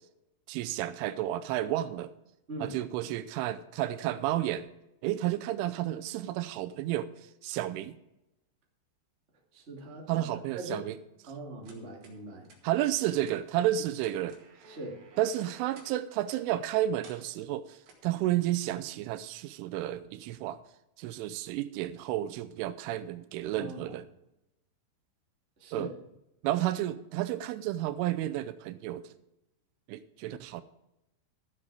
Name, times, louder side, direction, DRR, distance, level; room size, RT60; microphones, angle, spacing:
voice 1, 0.5-2.1 2.6-4.7 5.0-7.1 7.4-8.0 10.1-10.9 12.6-14.4 15.2-17.8 18.0-20.6 21.0-24.1 25.7-25.9 26.4-29.1 29.9-30.6, right 13 dB, 90° right, 13 dB, 3.2 m, -31 dB
voice 2, 9.5-10.2 10.5-10.8 11.3-12.5 14.7-15.0 23.5-23.9 25.6-25.9, right 1 dB, 25° right, -1 dB, 1.6 m, -41 dB
sound 1, 11.6-12.2 12.4-12.6 13.2-13.4 13.9-15.9 16.3-16.4 17.0-17.2 17.9-18.1, right 4 dB, 55° right, 3.3 m, -54 dB
15.0 x 7.5 x 4.8 m, 0.85 s
omnidirectional pair, 5.5 m